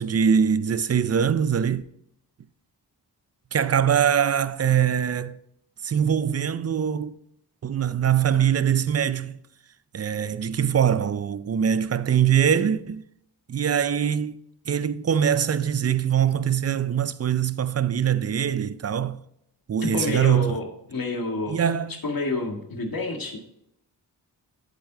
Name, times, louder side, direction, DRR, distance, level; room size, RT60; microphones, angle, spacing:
voice 1, 0.0-1.8 3.5-5.4 5.8-7.2 7.6-9.4 9.9-13.0 13.5-14.4 14.7-19.2 19.7-20.6 21.5-22.0, right 8 dB, 40° right, 0.5 m, -23 dB
voice 2, 19.8-21.6 22.0-23.4, left 2 dB, 55° left, 1.9 m, -29 dB
8.1 x 7.7 x 3.8 m
wide cardioid pair, 70°, 41 cm